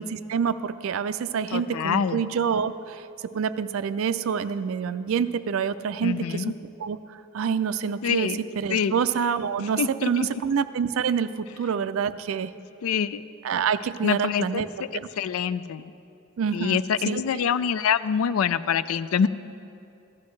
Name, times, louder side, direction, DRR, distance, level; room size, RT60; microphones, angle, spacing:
voice 1, 0.0-3.0 3.3-6.4 6.8-8.3 8.6-12.5 13.4-14.7 14.9-15.1 16.4-16.8 17.1-17.2, right 7 dB, 75° right, 13 dB, 0.4 m, -27 dB
voice 2, 1.5-2.2 6.0-6.5 8.0-8.4 8.7-9.0 9.6-10.3 12.8-13.3 14.0-14.6 14.9-15.9 16.5-19.3, left 7 dB, 80° left, 15 dB, 0.3 m, -25 dB
15.0 x 11.5 x 3.2 m, 2.7 s
head